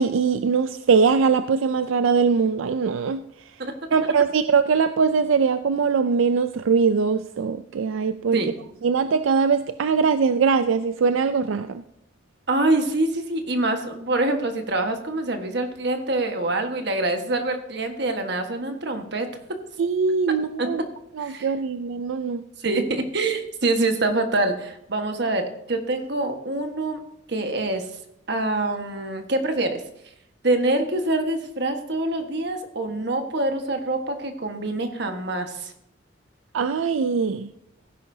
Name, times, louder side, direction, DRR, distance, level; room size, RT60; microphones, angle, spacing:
voice 1, 0.0-3.2 3.9-8.4 8.8-11.8 19.8-20.8 21.2-22.4 36.5-37.5, right 5 dB, 85° right, 11 dB, 0.4 m, -21 dB
voice 2, 12.5-19.3 20.6-20.7 21.2-21.5 22.6-27.0 27.3-27.8 28.3-29.8 30.4-35.7, right 2 dB, 60° right, 5 dB, 1.4 m, -25 dB
16.0 x 10.0 x 2.7 m, 0.77 s
head